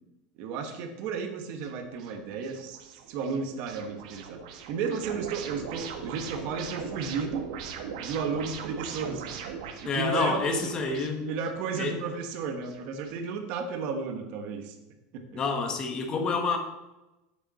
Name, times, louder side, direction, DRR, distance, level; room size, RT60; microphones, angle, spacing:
voice 1, 0.4-4.4 4.7-7.4 8.0-9.2 9.6-10.8 11.2-14.8 15.1-15.4, right 5 dB, 50° right, 6 dB, 1.3 m, -33 dB
sound 1, 1.6-13.1, right 6 dB, 75° right, 1.4 m, -41 dB
voice 2, 9.8-11.3 11.8-12.0 15.3-16.6, left 4 dB, 25° left, 5 dB, 1.3 m, -28 dB
9.0 x 8.1 x 4.2 m, 1.0 s
supercardioid pair, 160°, 3 cm